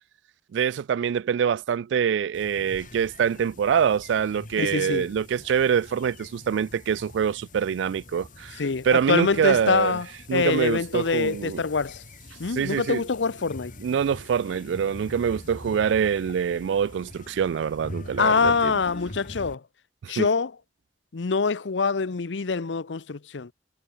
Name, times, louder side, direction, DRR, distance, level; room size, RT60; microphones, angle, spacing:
voice 1, 0.5-10.0 10.3-11.6 12.5-13.0 13.8-18.7 20.0-20.3, right 7 dB, 85° right, 0.3 m, -25 dB
sound 1, 2.3-19.5, left 1 dB, 50° left, 3.5 m, -44 dB
voice 2, 4.6-5.1 8.6-12.0 12.4-13.7 18.2-19.6 20.1-20.5 21.1-23.5, left 4 dB, 85° left, 0.7 m, -25 dB
head